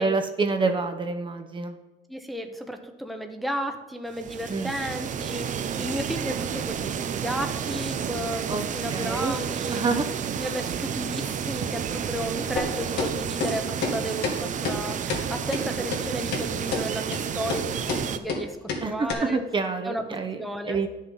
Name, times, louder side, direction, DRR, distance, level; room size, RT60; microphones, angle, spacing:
voice 1, 0.0-1.8 4.5-4.7 8.5-9.4 9.7-10.1 18.8-20.9, right 4 dB, 30° right, 6 dB, 1.0 m, -27 dB
voice 2, 2.1-6.9 7.2-9.9 10.4-18.6 18.8-19.4 19.8-20.0 20.4-20.8, equal, ahead, 4 dB, 1.1 m, -33 dB
sound 1, 4.1-18.2, right 8 dB, 50° right, 0.8 m, -31 dB
sound 2, 12.6-12.7 13.0-13.1 13.4-13.5 13.8-13.9 14.2-14.4 14.6-14.8 15.1-15.2 15.5-15.6 15.9-16.0 16.3-16.4 16.7-16.8 17.1-17.2 17.5-17.6 17.9-18.0 18.3-18.4 18.7-18.8 19.1-19.2, left 4 dB, 75° left, 2.4 m, -28 dB
11.0 x 6.5 x 5.5 m, 1.1 s
cardioid pair, 110°, 17 cm